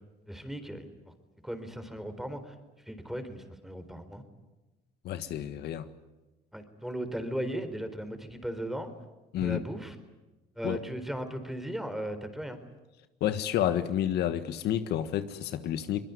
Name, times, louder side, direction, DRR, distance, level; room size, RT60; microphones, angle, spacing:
voice 1, 0.3-0.9 1.4-2.5 2.9-4.2 6.5-8.9 9.4-10.0 10.6-12.6, equal, ahead, 4.1 m, -37 dB
voice 2, 5.0-5.8 9.3-9.6 10.6-10.8 13.2-16.0, left 11 dB, 75° left, 1.5 m, -30 dB
23.5 x 21.5 x 9.6 m
cardioid pair, 110°, 17 cm